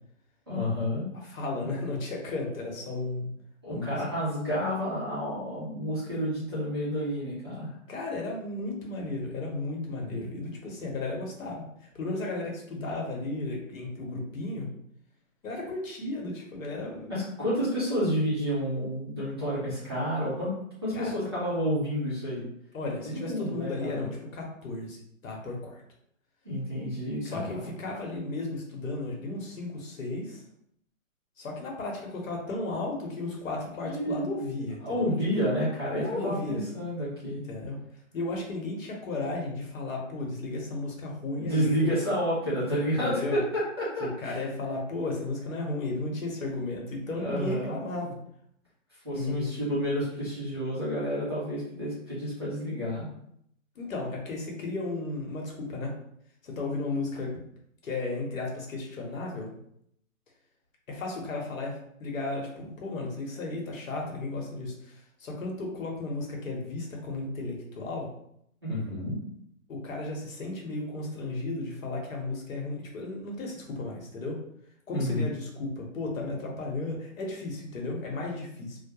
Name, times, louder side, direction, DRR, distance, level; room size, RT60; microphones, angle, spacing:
voice 1, 0.5-1.4 3.6-7.7 17.1-20.5 20.8-22.5 23.0-24.0 26.4-27.6 33.8-34.4 34.8-37.4 41.4-44.4 47.2-47.8 49.0-53.1 68.6-69.2 74.9-75.3, equal, 20° right, -11 dB, 0.5 m, -30 dB
voice 2, 1.1-3.3 3.7-4.0 7.9-14.7 15.4-17.1 20.9-21.2 22.7-25.0 25.2-25.8 27.2-30.4 31.4-35.2 35.9-36.6 37.4-37.8 38.1-41.9 43.0-43.4 44.0-48.2 49.1-49.5 53.8-55.9 56.4-57.3 57.8-59.5 60.9-68.1 69.7-74.4 74.9-78.8, left 2 dB, 70° left, -1 dB, 0.9 m, -34 dB
2.3 x 2.1 x 2.8 m, 0.72 s
hypercardioid pair, 165°, 41 cm